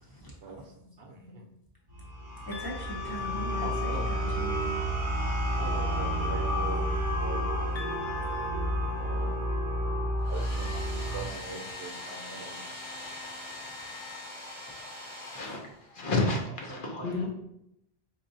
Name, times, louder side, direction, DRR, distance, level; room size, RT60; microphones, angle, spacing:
voice 1, 0.4-1.5 3.6-4.1 5.5-6.8 7.2-8.2 9.0-9.4 10.3-12.6 16.4-17.3, right 3 dB, 70° right, 2 dB, 0.8 m, -42 dB
sound 1, 1.9-11.3, equal, 35° right, 0.7 m, -30 dB
sound 2, 2.5-4.2 7.8-9.8, left 8 dB, 40° left, 0.4 m, -47 dB
voice 2, 2.5-4.7 11.3-11.4 11.9-12.0, left 1 dB, 25° left, -4 dB, 0.7 m, -40 dB
Domestic sounds home sounds, 10.2-16.1, left 2 dB, 80° left, 1.3 m, -42 dB
voice 3, 15.9-17.3, left 2 dB, 60° left, 0 dB, 0.8 m, -30 dB
4.4 x 2.5 x 2.6 m, 0.78 s
omnidirectional pair, 1.1 m